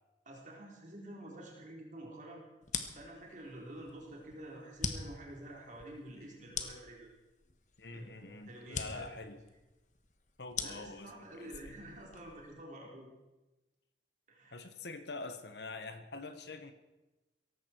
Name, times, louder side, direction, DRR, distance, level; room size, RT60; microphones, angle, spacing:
voice 1, 0.3-2.4 2.9-7.1 7.9-9.1 10.6-13.1 14.3-14.6, right 1 dB, 45° right, -2 dB, 4.1 m, -49 dB
sound 1, 2.6-12.5, left 5 dB, 40° left, 1.3 m, -43 dB
voice 2, 7.8-9.4 10.4-11.8 14.5-16.7, left 3 dB, 65° left, 10 dB, 1.2 m, -45 dB
17.5 x 15.0 x 4.6 m, 1.1 s
head